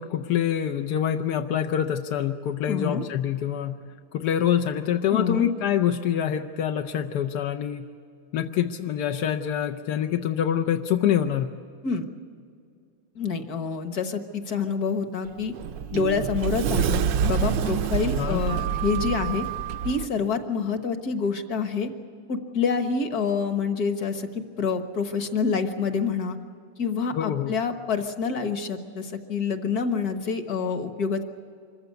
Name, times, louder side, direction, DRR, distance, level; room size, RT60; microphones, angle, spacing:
voice 1, 0.0-3.8 4.1-7.9 8.3-11.5 18.2-18.4 27.1-27.6, left 9 dB, 65° left, 5 dB, 1.0 m, -25 dB
voice 2, 2.7-3.1 5.1-5.5 11.8-12.1 13.2-15.5 15.9-19.5 19.8-21.9 22.3-26.4 26.8-31.2, left 5 dB, 50° left, 7 dB, 1.7 m, -27 dB
Sliding door, 15.2-20.1, right 8 dB, 70° right, 1.2 m, -27 dB
25.5 x 15.0 x 9.5 m, 2.4 s
omnidirectional pair, 2.4 m